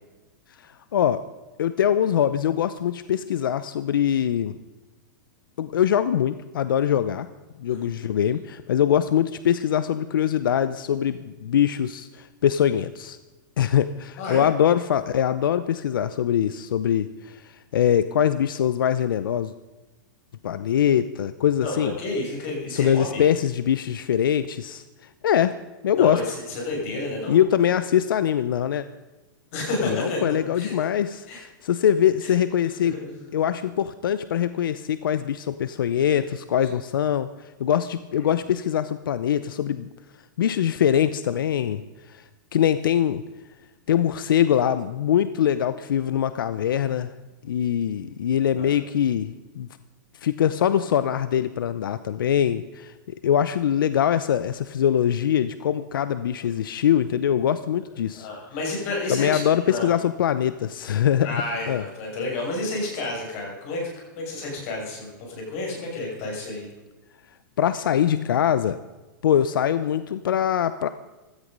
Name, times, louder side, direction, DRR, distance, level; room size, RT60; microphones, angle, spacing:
voice 1, 0.6-1.2 1.6-4.6 5.6-7.3 7.6-13.2 13.6-19.5 20.4-22.0 22.7-24.8 25.2-25.5 25.8-26.2 27.3-28.8 29.8-33.0 33.3-39.9 40.4-41.8 42.1-42.2 42.5-43.2 43.9-47.1 47.4-49.7 50.2-58.3 59.1-61.3 61.7-61.8 67.6-68.8 69.2-70.9, left 9 dB, 90° left, 13 dB, 0.8 m, -23 dB
voice 2, 7.7-8.1 14.2-14.4 21.6-23.2 25.9-27.4 29.5-30.7 31.3-31.4 32.2-32.4 32.8-33.3 48.6-48.8 58.1-59.9 61.2-63.9 64.2-66.7, left 2 dB, 40° left, -1 dB, 7.1 m, -30 dB
16.5 x 13.5 x 5.4 m, 1.1 s
supercardioid pair, 165°, 11 cm